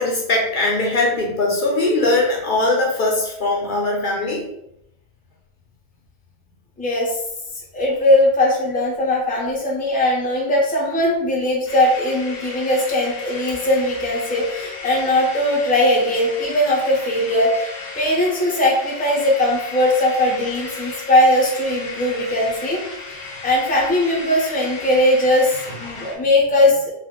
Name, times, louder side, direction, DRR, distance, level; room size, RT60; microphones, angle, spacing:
voice 1, 0.0-4.5, left 2 dB, 55° left, -2 dB, 0.7 m, -20 dB
voice 2, 6.8-7.2 7.7-17.6 17.9-22.8 23.1-23.2 23.4-26.9, left 1 dB, 10° left, -3 dB, 0.6 m, -19 dB
sound 1, 11.7-26.2, left 4 dB, 85° left, 1.1 m, -34 dB
2.7 x 2.4 x 3.5 m, 0.79 s
omnidirectional pair, 1.1 m